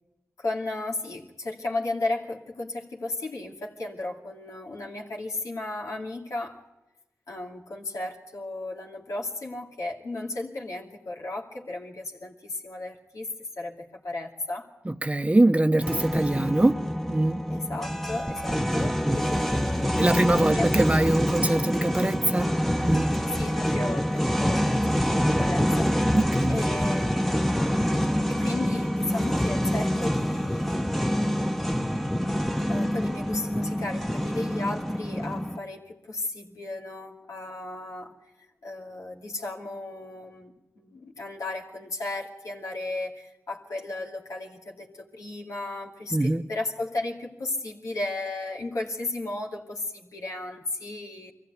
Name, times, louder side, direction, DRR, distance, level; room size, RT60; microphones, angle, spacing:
voice 1, 0.4-6.6 7.3-14.7 17.5-20.2 20.5-20.8 23.3-25.9 26.5-27.9 28.2-31.0 32.7-38.1 38.6-51.3, left 2 dB, 90° left, -2 dB, 2.5 m, -35 dB
voice 2, 14.9-16.8 17.1-17.4 19.1-19.2 20.0-22.5 22.8-23.1 26.1-26.6 46.1-46.4, right 1 dB, 25° right, 11 dB, 0.8 m, -23 dB
sound 1, 15.8-35.6, equal, 5° left, 1.0 m, -26 dB
23.0 x 16.0 x 9.3 m, 1.0 s
cardioid pair, 40°, 6 cm